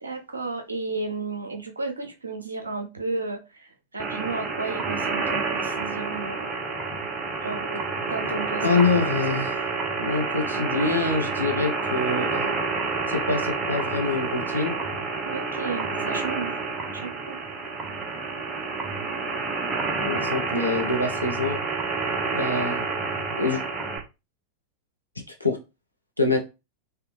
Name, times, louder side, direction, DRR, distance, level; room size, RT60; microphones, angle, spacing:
voice 1, 0.0-6.5 7.4-7.8 8.1-8.8 15.2-16.5 16.9-17.4, right 3 dB, 75° right, 4 dB, 0.7 m, -33 dB
sound 1, 4.0-24.0, right 4 dB, 15° right, 0.8 m, -29 dB
voice 2, 8.6-9.6 10.0-12.4 13.1-14.7 20.0-21.6 22.3-22.8 23.4-23.6 25.4-25.6 26.2-26.4, left 3 dB, 85° left, 2 dB, 0.7 m, -25 dB
3.3 x 2.2 x 3.1 m, 0.27 s
figure-of-eight pair, 90°, 0 cm